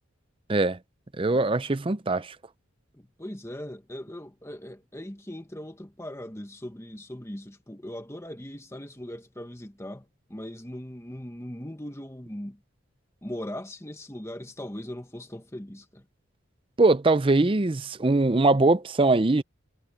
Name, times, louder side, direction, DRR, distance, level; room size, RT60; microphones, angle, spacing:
voice 1, 1.2-2.4 16.8-19.4, right 2 dB, 25° right, 0.5 m, -22 dB
voice 2, 2.9-10.0 10.3-12.6 13.2-16.0, left 1 dB, 15° left, 1.3 m, -39 dB
head